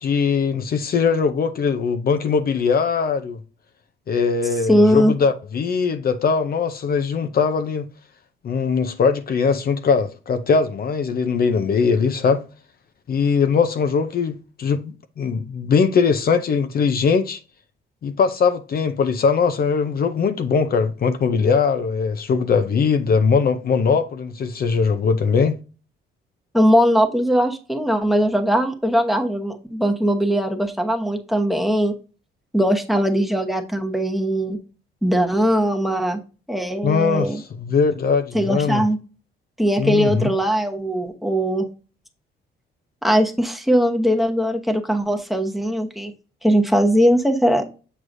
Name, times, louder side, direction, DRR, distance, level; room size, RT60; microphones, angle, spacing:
voice 1, 0.0-3.4 4.1-7.9 8.4-12.4 13.1-17.4 18.0-25.5 36.8-38.8 39.8-40.3, left 5 dB, 50° left, 0.6 m, -20 dB
voice 2, 4.7-5.1 26.5-32.0 32.5-34.6 35.0-36.2 36.5-37.4 38.3-39.0 39.6-41.7 43.0-46.1 46.4-47.6, equal, ahead, 1.0 m, -20 dB
8.0 x 4.7 x 2.6 m
cardioid pair, 90°, 20 cm